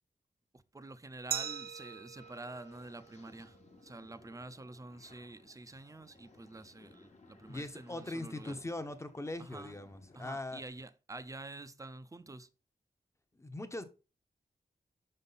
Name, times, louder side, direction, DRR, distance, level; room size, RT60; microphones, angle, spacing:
voice 1, 0.5-8.6 9.4-9.7 10.1-12.5, right 2 dB, 20° right, 0.6 m, -48 dB
Glass, 1.3-4.0, right 9 dB, 65° right, 0.4 m, -42 dB
sound 1, 2.2-10.3, left 3 dB, 45° left, 1.2 m, -61 dB
voice 2, 7.5-10.6 13.4-13.9, left 2 dB, 15° left, 0.9 m, -40 dB
6.3 x 5.4 x 4.1 m
wide cardioid pair, 115°, 17 cm